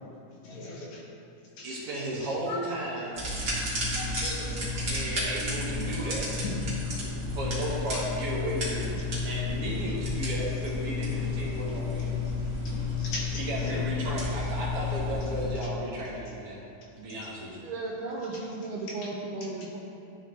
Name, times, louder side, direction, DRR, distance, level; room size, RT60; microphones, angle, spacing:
voice 1, 0.4-1.0 1.6-1.8 2.5-2.6 4.0-4.9 6.0-6.1 6.4-6.5 13.0-13.8, left 3 dB, 70° left, -4 dB, 2.4 m, -38 dB
voice 2, 1.6-3.2 4.8-6.3 7.3-8.9 9.2-12.1 13.3-16.6 17.0-17.5, right 1 dB, 65° right, -5 dB, 1.5 m, -34 dB
sound 1, 3.1-15.5, left 3 dB, 40° right, 1.5 m, -31 dB
voice 3, 17.5-19.8, right 2 dB, 90° right, -3 dB, 2.2 m, -35 dB
11.5 x 4.3 x 3.1 m, 2.6 s
omnidirectional pair, 3.7 m